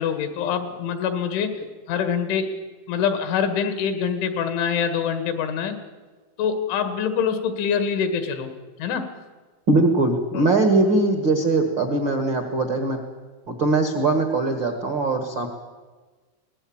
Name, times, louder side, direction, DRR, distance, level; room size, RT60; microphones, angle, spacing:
voice 1, 0.0-1.6 1.9-2.6 2.9-5.8 6.4-8.5 8.8-9.1 10.3-10.5, left 7 dB, 90° left, 8 dB, 4.2 m, -25 dB
voice 2, 9.7-13.0 13.5-15.5, right 2 dB, 80° right, 5 dB, 1.0 m, -21 dB
22.0 x 18.0 x 8.8 m, 1.4 s
omnidirectional pair, 5.2 m